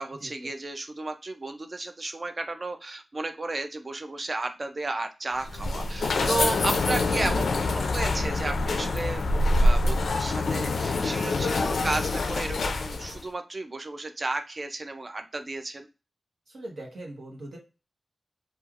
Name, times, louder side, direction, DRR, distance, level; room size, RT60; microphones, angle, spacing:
voice 1, 0.0-9.3 9.6-15.9, right 2 dB, 40° right, 7 dB, 0.4 m, -33 dB
sound 1, 5.4-13.2, left 2 dB, 90° left, 0.3 m, -25 dB
voice 2, 16.5-17.6, right 1 dB, 80° right, 0 dB, 0.9 m, -41 dB
3.1 x 2.3 x 2.4 m, 0.30 s
wide cardioid pair, 100°, 0 cm